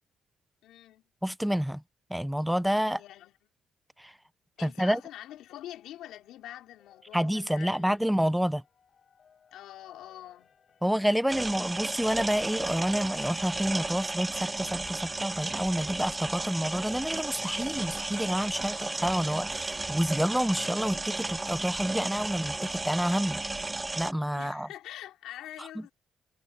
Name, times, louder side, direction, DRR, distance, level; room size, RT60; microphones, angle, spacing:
voice 1, 0.6-1.0 2.9-3.4 4.6-8.0 9.5-10.5 24.3-25.9, left 13 dB, 85° left, 3.0 m, -45 dB
voice 2, 1.2-1.8 2.1-3.0 4.0-4.1 4.6-5.0 7.1-8.6 10.8-23.4 24.0-24.7, equal, ahead, 0.5 m, -28 dB
sound 1, 5.3-24.4, left 7 dB, 50° left, 4.7 m, -60 dB
sound 2, 11.3-24.1, right 2 dB, 20° right, 1.3 m, -34 dB
cardioid pair, 90°, 0 cm